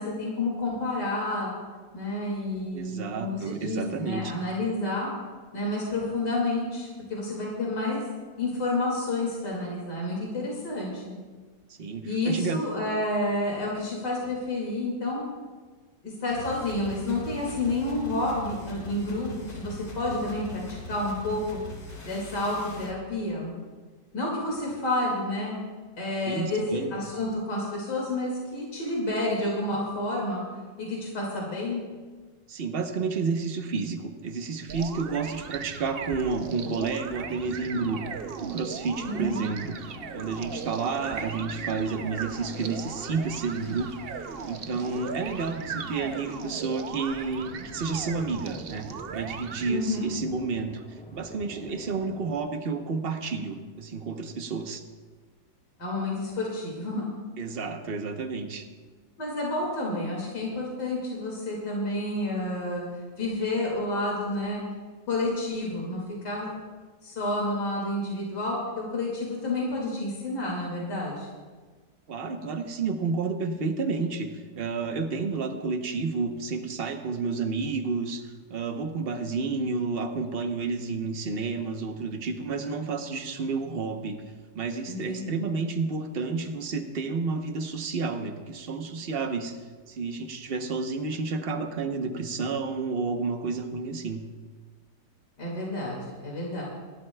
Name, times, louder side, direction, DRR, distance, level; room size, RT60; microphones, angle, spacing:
voice 1, 0.0-1.5 1.9-5.1 5.5-8.0 8.4-11.1 12.0-15.2 16.0-21.6 22.0-23.5 24.1-25.6 26.0-30.4 30.8-31.8 39.0-39.4 49.7-50.1 55.8-57.1 59.2-62.8 63.2-64.6 65.1-66.5 67.0-71.3 84.9-85.5 95.4-96.6, left 2 dB, 80° left, -4 dB, 3.0 m, -30 dB
voice 2, 2.7-4.3 11.8-12.6 26.2-26.9 32.5-38.0 38.4-43.9 44.4-50.8 51.1-54.8 57.4-58.7 72.1-84.2 84.5-89.6 89.9-94.2, right 4 dB, 40° right, 6 dB, 1.0 m, -30 dB
sound 1, 16.3-23.0, equal, 65° left, 3.4 m, -41 dB
sound 2, 34.7-49.7, right 6 dB, 65° right, 0.5 m, -38 dB
sound 3, 36.6-52.4, equal, 5° left, 2.2 m, -46 dB
28.5 x 11.5 x 2.3 m, 1.4 s
omnidirectional pair, 1.8 m